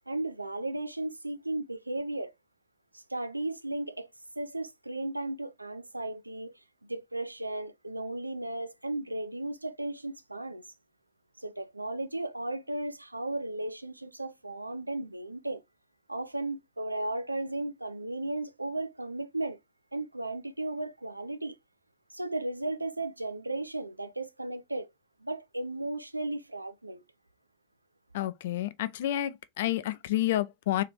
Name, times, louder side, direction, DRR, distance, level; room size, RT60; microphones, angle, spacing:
voice 1, 0.0-2.3 2.9-4.1 4.4-6.5 6.8-10.6 11.4-15.6 16.1-19.6 19.9-21.6 22.1-24.9 25.2-27.0, right 2 dB, 85° right, 0.4 m, -35 dB
voice 2, 28.1-30.8, left 13 dB, 55° left, 0.4 m, -29 dB
3.4 x 2.8 x 4.0 m
figure-of-eight pair, 90°, 0 cm